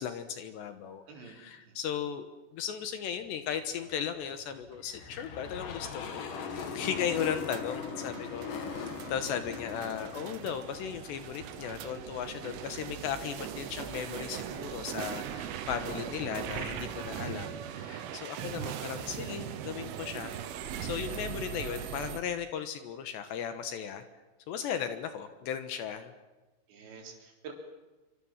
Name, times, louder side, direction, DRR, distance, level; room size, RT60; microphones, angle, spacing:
voice 1, 0.0-2.3 2.5-20.4 20.8-24.0 24.5-26.1, left 8 dB, 70° left, 9 dB, 3.2 m, -36 dB
voice 2, 1.1-1.8 8.7-8.9 18.4-19.1 26.7-27.5, right 5 dB, 60° right, 2 dB, 6.0 m, -50 dB
sound 1, 3.6-22.2, right 9 dB, 80° right, 3.9 m, -40 dB
sound 2, 4.8-11.3, left 5 dB, 50° left, 3.1 m, -40 dB
26.5 x 25.0 x 7.4 m, 1.2 s
omnidirectional pair, 5.7 m